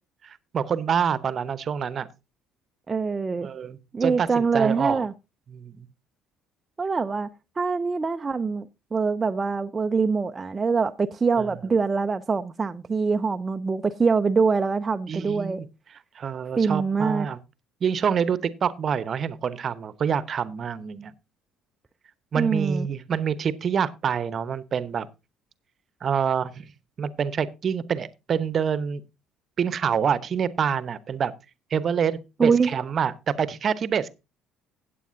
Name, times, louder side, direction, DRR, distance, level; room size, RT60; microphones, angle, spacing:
voice 1, 0.2-2.1 3.4-5.0 5.5-5.9 11.4-11.5 15.1-15.7 16.1-17.4 17.8-21.1 22.3-25.1 26.0-26.6 27.0-29.0 29.6-31.3 31.7-34.1, right 7 dB, 45° right, 0.9 m, -26 dB
voice 2, 2.9-3.5 3.9-5.1 6.8-7.3 7.6-15.6 16.6-17.3 22.3-22.9 32.4-32.7, right 5 dB, 25° right, 0.5 m, -24 dB
16.5 x 8.5 x 2.6 m
figure-of-eight pair, 55°, 0 cm